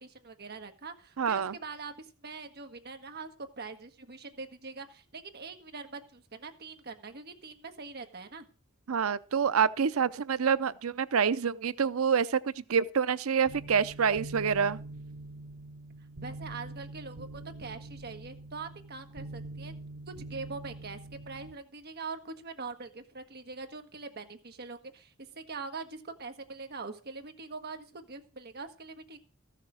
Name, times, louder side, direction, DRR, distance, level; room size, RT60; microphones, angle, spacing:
voice 1, 0.0-8.4 16.2-19.8 20.1-29.2, right 4 dB, 50° right, 1.4 m, -43 dB
voice 2, 1.2-1.5 8.9-14.8, right 6 dB, 90° right, 0.6 m, -27 dB
sound 1, 13.5-21.5, right 2 dB, 75° right, 1.6 m, -44 dB
14.0 x 6.7 x 6.2 m
head